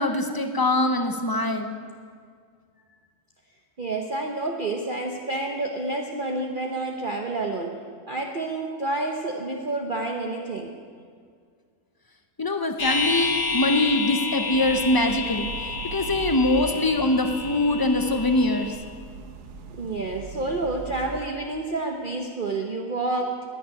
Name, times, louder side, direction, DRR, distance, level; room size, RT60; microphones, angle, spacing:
voice 1, 0.0-1.8 12.4-18.8, left 2 dB, 30° left, 7 dB, 0.4 m, -23 dB
voice 2, 3.8-7.8 8.1-10.7 19.8-23.5, right 2 dB, 40° right, 1 dB, 0.9 m, -29 dB
sound 1, 12.8-18.7, left 4 dB, 50° left, 2.2 m, -30 dB
sound 2, 14.5-21.2, right 5 dB, 80° right, 1.5 m, -40 dB
10.5 x 10.0 x 9.7 m, 2.1 s
omnidirectional pair, 1.7 m